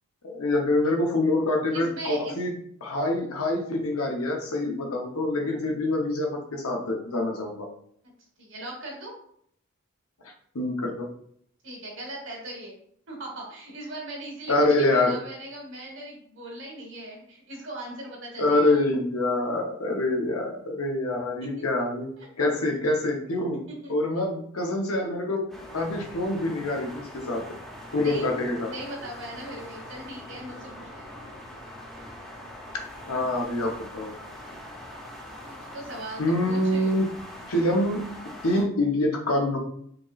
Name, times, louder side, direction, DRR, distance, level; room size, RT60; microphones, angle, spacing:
voice 1, 0.2-2.5 2.8-7.7 10.5-11.1 14.5-15.2 18.4-22.1 22.4-23.6 23.9-25.4 25.7-27.4 27.9-28.7 33.1-34.1 36.2-37.1 37.5-38.1 38.4-39.6, left 2 dB, 90° left, 2 dB, 0.9 m, -25 dB
voice 2, 1.7-2.4 8.4-9.1 11.6-12.8 13.1-18.8 21.6-21.7 22.2-22.3 23.8-24.2 28.0-28.3 28.7-31.2 35.4-37.0, right 1 dB, 60° right, -1 dB, 1.4 m, -39 dB
sound 1, 25.5-38.6, left 1 dB, ahead, 0.6 m, -43 dB
4.9 x 3.0 x 2.4 m, 0.65 s
head